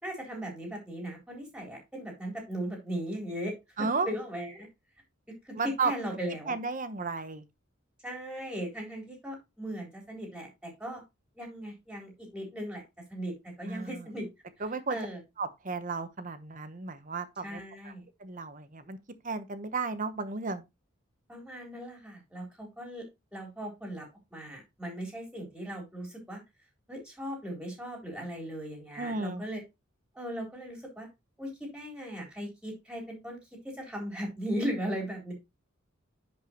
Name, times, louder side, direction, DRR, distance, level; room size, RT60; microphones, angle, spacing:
voice 1, 0.0-3.5 4.0-4.7 5.3-6.5 8.0-11.0 11.4-12.8 13.1-14.3 14.9-15.2 17.4-18.1 21.3-23.0 23.3-26.4 26.9-29.6 30.2-31.1 31.4-33.4 33.6-35.3, equal, 5° right, 3.7 m, -38 dB
voice 2, 3.8-4.1 5.6-5.9 6.5-7.4 13.7-14.1 14.6-15.0 15.4-17.9 18.2-19.0 19.2-20.6 29.0-29.4, right 4 dB, 40° right, 1.0 m, -33 dB
10.5 x 5.4 x 2.9 m
head